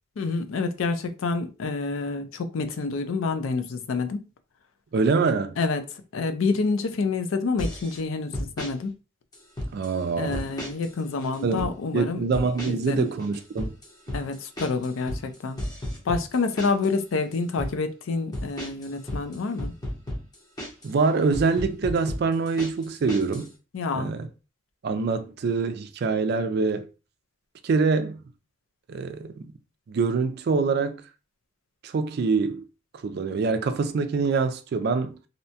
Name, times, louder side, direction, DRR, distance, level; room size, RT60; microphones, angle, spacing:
voice 1, 0.2-4.3 5.6-5.8 6.1-8.9 10.2-12.2 12.6-13.1 14.1-15.6 16.1-19.7 23.7-24.1, left 4 dB, 75° left, 0.4 m, -28 dB
voice 2, 4.9-5.6 9.7-10.5 11.4-11.7 11.9-13.7 20.8-23.5 23.9-24.3 24.8-26.9 27.6-28.2 28.9-29.5 29.9-31.0 31.8-32.6 33.0-35.2, right 4 dB, 50° right, 0.3 m, -25 dB
sound 1, 7.6-8.0 8.3-8.7 9.3-9.9 10.3-10.9 11.2-11.7 12.3-12.9 13.2-16.9 17.3-17.7 18.3-20.9 21.3-23.5, left 1 dB, 20° left, 0.7 m, -34 dB
2.7 x 2.1 x 2.7 m
head